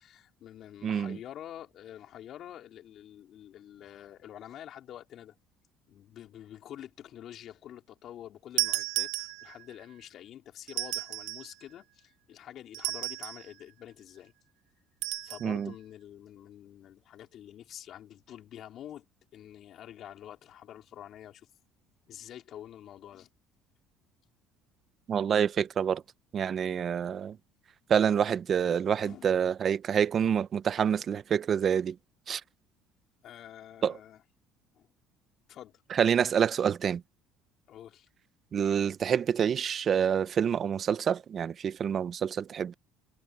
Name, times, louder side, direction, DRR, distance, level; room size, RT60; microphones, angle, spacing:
voice 1, 0.0-5.4 5.9-14.3 15.2-19.1 19.3-21.5 22.1-23.3 29.0-29.3 33.2-34.2 34.7-34.9 35.5-35.8 37.7-38.1, left 11 dB, 55° left, 4.0 m, -47 dB
voice 2, 0.8-1.2 15.4-15.7 25.1-26.0 26.3-27.3 27.9-31.9 32.3-32.4 33.8-33.9 36.0-37.0 38.5-42.7, right 8 dB, 45° right, 0.7 m, -27 dB
sound 1, 8.6-9.7 10.7-11.5 12.7-13.5 15.0-15.5, right 19 dB, 80° right, 1.0 m, -33 dB
supercardioid pair, 95°, 0 cm